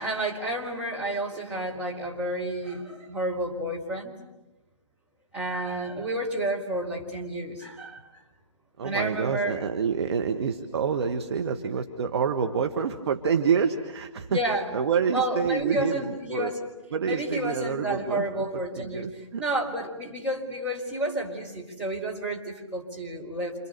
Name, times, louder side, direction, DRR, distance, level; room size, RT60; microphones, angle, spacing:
voice 1, 0.0-4.1 5.3-8.2 8.8-9.7 14.3-14.8 15.1-16.7 17.0-23.7, right 1 dB, 5° right, -3 dB, 4.4 m, -30 dB
voice 2, 8.8-14.4 14.7-16.5 16.9-18.5 18.7-19.4, right 6 dB, 50° right, 5 dB, 1.8 m, -27 dB
29.0 x 29.0 x 6.9 m, 1.0 s
figure-of-eight pair, 145°, 17 cm